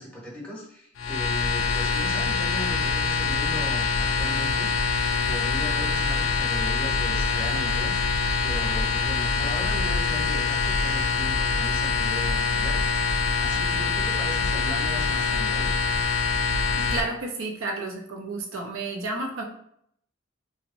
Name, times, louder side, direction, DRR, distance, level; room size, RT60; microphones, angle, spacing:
voice 1, 0.0-4.8 5.2-13.0 13.4-15.7, equal, 5° left, -5 dB, 0.9 m, -38 dB
sound 1, 1.0-17.0, left 4 dB, 70° left, 0.4 m, -25 dB
voice 2, 16.7-19.4, right 3 dB, 90° right, 1 dB, 0.6 m, -31 dB
2.8 x 2.1 x 2.5 m, 0.69 s
head